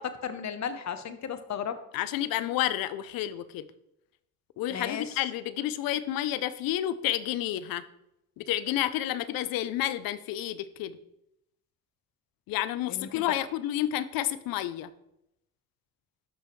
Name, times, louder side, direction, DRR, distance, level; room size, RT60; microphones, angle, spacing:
voice 1, 0.0-1.8 4.7-5.2 12.9-13.2, left 7 dB, 55° left, 10 dB, 0.9 m, -35 dB
voice 2, 1.9-3.7 4.6-7.8 8.4-11.0 12.5-14.9, left 13 dB, 90° left, 15 dB, 0.6 m, -30 dB
12.0 x 5.5 x 3.1 m, 0.84 s
cardioid pair, 80°, 34 cm